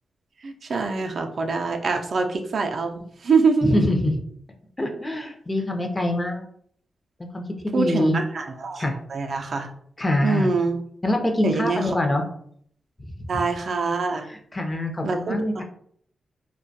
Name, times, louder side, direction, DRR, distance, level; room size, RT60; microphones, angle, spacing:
voice 1, 0.4-3.8 7.7-9.7 10.2-10.8 11.4-11.9 13.3-14.3 15.0-15.4, right 4 dB, 65° right, 4 dB, 0.4 m, -24 dB
voice 2, 3.6-4.1 4.8-6.4 7.2-8.2 8.8-8.9 10.0-10.5 11.0-12.2 14.3-15.6, left 1 dB, 25° left, 3 dB, 0.5 m, -24 dB
2.2 x 2.1 x 2.6 m, 0.64 s
cardioid pair, 55°, 0 cm